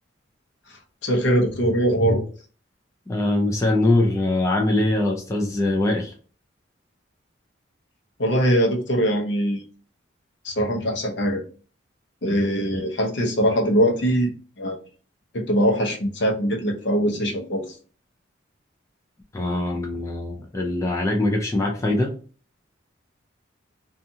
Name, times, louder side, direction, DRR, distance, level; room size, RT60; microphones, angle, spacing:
voice 1, 0.7-2.2 8.2-9.6 10.4-11.4 12.2-14.3 14.6-14.8 15.3-17.8, equal, 65° left, 1 dB, 0.7 m, -22 dB
voice 2, 3.1-6.1 12.7-12.8 19.3-22.1, left 2 dB, 15° left, -1 dB, 0.3 m, -22 dB
2.6 x 2.4 x 2.6 m, 0.39 s
head